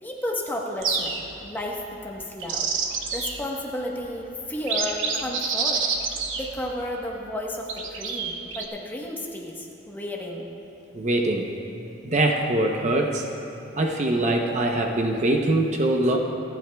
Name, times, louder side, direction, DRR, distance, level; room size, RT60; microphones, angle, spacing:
voice 1, 0.0-2.7 3.1-10.5, left 1 dB, 10° left, -2 dB, 1.1 m, -33 dB
sound 1, 0.8-1.5 2.2-3.5 4.0-4.1 4.6-6.9 7.7-8.6, right 5 dB, 75° right, 0.9 m, -28 dB
voice 2, 10.9-11.5 12.0-13.3 13.7-16.2, right 1 dB, 35° right, 1 dB, 0.7 m, -23 dB
27.0 x 10.5 x 2.3 m, 2.9 s
head